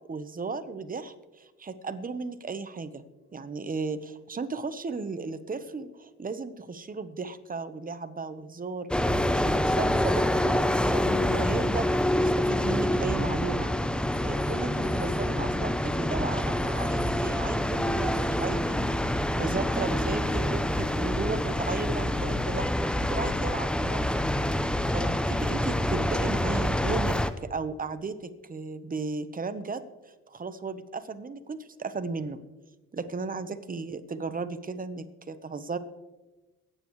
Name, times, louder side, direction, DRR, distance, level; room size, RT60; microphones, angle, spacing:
voice 1, 0.1-3.0 3.3-8.9 9.3-11.9 12.2-13.7 14.2-22.7 23.1-24.3 24.9-29.8 30.3-32.4 32.9-35.8, right 4 dB, 30° right, 11 dB, 1.1 m, -35 dB
sound 1, 8.9-27.3, left 1 dB, 5° left, 0.6 m, -26 dB
22.5 x 9.6 x 3.2 m, 1.1 s
cardioid pair, 90°, 30 cm